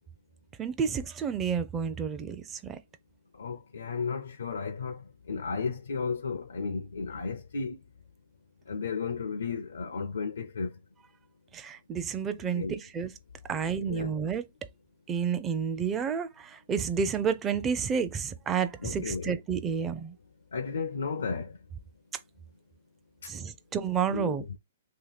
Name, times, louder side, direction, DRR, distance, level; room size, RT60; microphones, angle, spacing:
voice 1, 0.6-2.8 11.5-13.1 13.5-14.5 15.1-20.1 23.3-24.4, right 7 dB, 20° right, 0.5 m, -30 dB
voice 2, 3.4-5.0 5.3-7.8 8.7-10.7 12.5-12.8 13.8-14.1 18.8-19.3 20.5-21.5 24.1-24.4, left 5 dB, 85° left, 0.5 m, -33 dB
2.9 x 2.8 x 3.9 m
hypercardioid pair, 140°, 0 cm